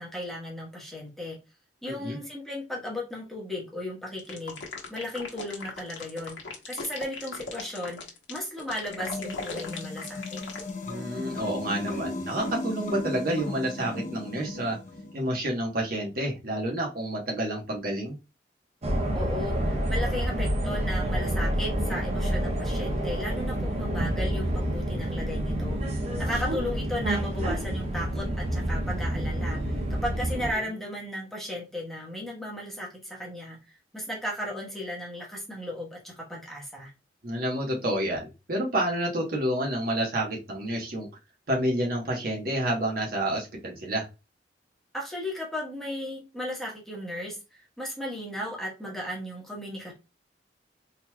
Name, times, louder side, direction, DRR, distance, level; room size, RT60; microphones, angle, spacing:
voice 1, 0.0-1.4 1.8-4.6 4.9-6.4 6.7-8.0 8.3-10.4 19.1-25.8 26.2-33.6 33.9-36.9 44.9-49.9, left 1 dB, ahead, -3 dB, 1.1 m, -35 dB
voice 2, 1.8-2.2 10.8-14.8 15.1-18.2 37.2-41.1 41.5-44.1, right 1 dB, 55° right, -1 dB, 1.1 m, -29 dB
sound 1, 4.2-10.7, left 4 dB, 80° left, 1.0 m, -38 dB
sound 2, 8.9-15.2, left 2 dB, 45° left, 0.7 m, -36 dB
sound 3, 18.8-30.5, right 1 dB, 35° right, 0.7 m, -28 dB
3.9 x 3.0 x 2.2 m, 0.28 s
head